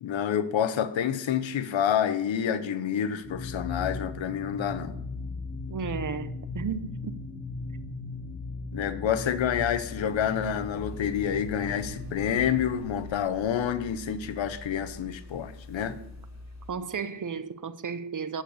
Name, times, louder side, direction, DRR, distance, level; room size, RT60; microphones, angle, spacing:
voice 1, 0.0-5.0 8.7-16.0, left 9 dB, 85° left, 0.9 m, -28 dB
sound 1, 3.2-12.8, left 3 dB, 20° left, 1.5 m, -38 dB
voice 2, 5.7-7.2 16.7-18.4, right 6 dB, 45° right, 0.7 m, -34 dB
sound 2, 9.7-16.7, left 3 dB, 35° left, 2.9 m, -45 dB
11.5 x 4.6 x 7.9 m
cardioid pair, 85°, 45 cm